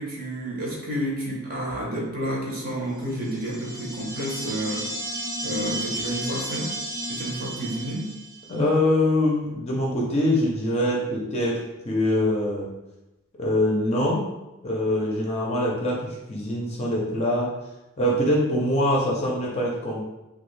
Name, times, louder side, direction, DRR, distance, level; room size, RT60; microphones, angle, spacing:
voice 1, 0.0-4.9 5.4-6.8 7.1-8.1, right 1 dB, 40° right, -4 dB, 0.9 m, -30 dB
sound 1, 3.1-8.5, right 1 dB, 70° right, 1.2 m, -33 dB
voice 2, 8.5-12.7 13.4-14.3 14.6-17.5 18.0-20.0, left 1 dB, 30° left, -3 dB, 0.5 m, -24 dB
3.1 x 2.4 x 3.2 m, 1.0 s
head